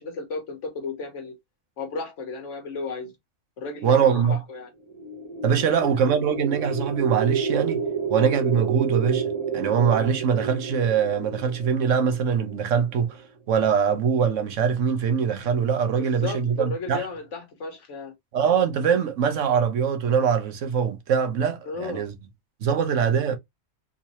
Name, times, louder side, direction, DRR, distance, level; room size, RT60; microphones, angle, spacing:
voice 1, 0.0-1.3 1.8-3.1 3.6-4.7 5.6-5.8 16.0-18.1 21.6-22.0, left 3 dB, 75° left, 1.5 m, -34 dB
voice 2, 3.8-4.4 5.4-7.8 8.1-9.2 9.5-13.2 13.5-17.1 18.3-22.1 22.6-23.4, right 7 dB, 80° right, 1.2 m, -23 dB
sound 1, 4.8-13.0, right 5 dB, 35° right, 0.5 m, -30 dB
3.8 x 2.8 x 2.8 m
omnidirectional pair, 1.3 m